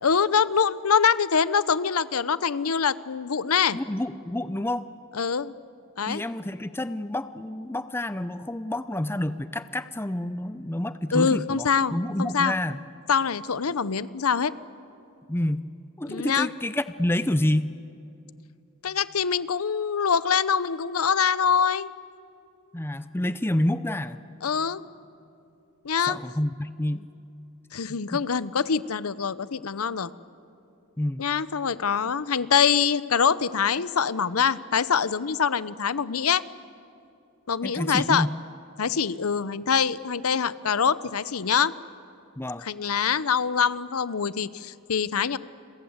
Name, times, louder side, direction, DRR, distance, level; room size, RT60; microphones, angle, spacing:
voice 1, 0.0-3.8 5.1-5.5 6.0-6.2 11.1-12.5 13.1-14.5 16.1-16.5 18.8-21.9 24.4-24.8 25.8-26.2 27.7-30.1 31.2-36.4 37.5-38.3 38.8-41.7 42.6-45.4, left 6 dB, 85° left, 17 dB, 0.8 m, -24 dB
voice 2, 3.7-4.9 6.1-12.8 15.3-15.7 16.0-17.8 22.7-24.2 26.0-27.1 28.1-28.2 31.0-31.2 37.6-38.4 42.4-42.7, left 1 dB, 10° left, 13 dB, 0.5 m, -28 dB
30.0 x 23.0 x 8.0 m, 2.7 s
head